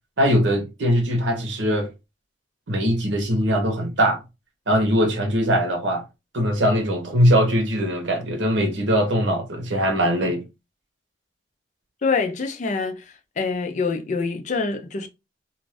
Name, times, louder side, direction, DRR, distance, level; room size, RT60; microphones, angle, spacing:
voice 1, 0.2-1.9 2.7-4.2 4.7-6.0 6.3-10.4, equal, 80° right, 0.9 m, -21 dB
voice 2, 12.0-13.1 13.4-15.1, left 4 dB, 40° left, 0.4 m, -25 dB
2.5 x 2.3 x 3.3 m
head